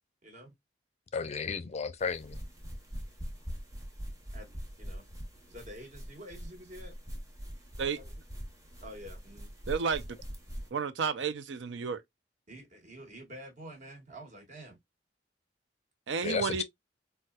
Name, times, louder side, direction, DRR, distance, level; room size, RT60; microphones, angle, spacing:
voice 1, 0.2-0.5 4.3-4.5 4.8-5.0 5.5-7.0 7.9-8.1 8.8-9.5 12.5-14.8, equal, 45° right, 1.2 m, -48 dB
voice 2, 1.1-2.4 16.2-16.6, left 5 dB, 40° left, 0.4 m, -33 dB
sound 1, 2.0-10.7, equal, 20° right, 0.9 m, -43 dB
voice 3, 9.7-10.0 10.7-12.0 16.1-16.6, right 6 dB, 80° right, 0.5 m, -31 dB
4.0 x 2.2 x 2.2 m
head